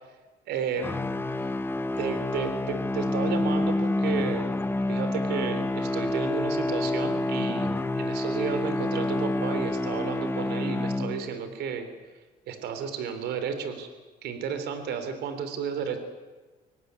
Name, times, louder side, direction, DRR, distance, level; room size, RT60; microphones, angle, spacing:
voice 1, 0.5-1.0 2.0-4.5 4.9-7.7 7.9-11.9 12.5-13.9 14.2-16.0, right 6 dB, 75° right, 9 dB, 3.5 m, -32 dB
sound 1, 0.8-11.5, left 2 dB, 15° left, 1.0 m, -28 dB
24.0 x 18.0 x 9.5 m, 1.3 s
cardioid pair, 110°, 17 cm